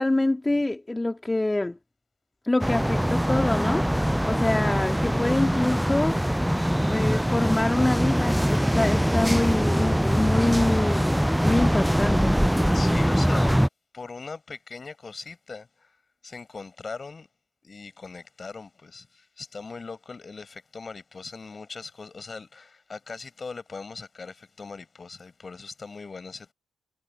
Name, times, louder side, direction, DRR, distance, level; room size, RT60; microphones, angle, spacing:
voice 1, 0.0-1.8 2.4-3.9 4.3-6.2 6.9-12.3, left 2 dB, 15° left, 2.3 m, -25 dB
sound 1, 2.6-13.7, equal, ahead, 0.3 m, -23 dB
voice 2, 12.6-13.5 13.9-16.0 16.2-17.3 17.6-26.5, left 4 dB, 35° left, 5.7 m, -40 dB
figure-of-eight pair, 40°, 0 cm